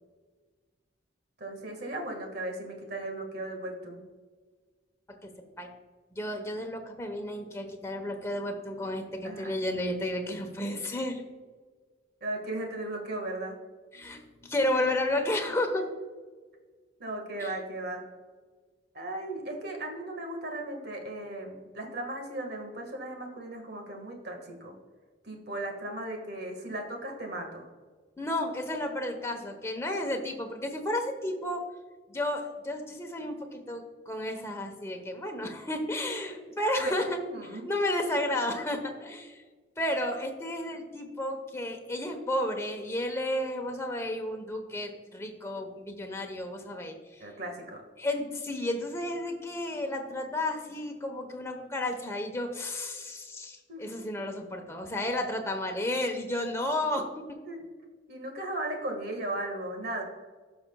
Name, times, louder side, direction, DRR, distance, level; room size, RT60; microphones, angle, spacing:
voice 1, 1.4-4.0 9.2-9.6 12.2-13.6 15.8-15.9 17.0-18.0 18.9-24.8 25.2-27.7 36.0-36.4 36.8-36.9 37.3-37.6 47.2-47.8 53.7-54.0 57.5-57.6 58.1-60.0, right 1 dB, 60° right, 3 dB, 1.7 m, -36 dB
voice 2, 6.1-11.2 13.9-15.8 17.4-17.5 28.2-31.6 32.1-37.0 37.4-39.4 39.8-47.2 48.0-57.2, left 1 dB, 15° left, 3 dB, 1.0 m, -32 dB
16.5 x 6.1 x 2.3 m, 1.4 s
head